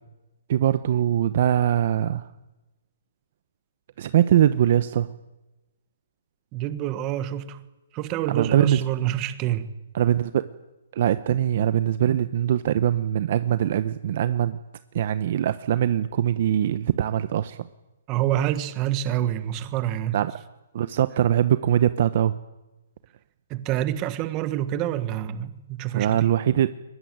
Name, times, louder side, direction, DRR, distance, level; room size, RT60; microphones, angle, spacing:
voice 1, 0.5-2.3 4.0-5.1 8.3-8.8 9.9-10.5 10.9-14.6 14.9-17.6 20.1-20.3 20.7-22.3 25.9-26.7, right 11 dB, 40° right, 0.8 m, -22 dB
voice 2, 6.5-7.6 7.9-9.7 18.1-20.2 23.5-26.3, right 12 dB, 20° right, 1.4 m, -27 dB
23.0 x 20.5 x 9.4 m
hypercardioid pair, 175°, 0 cm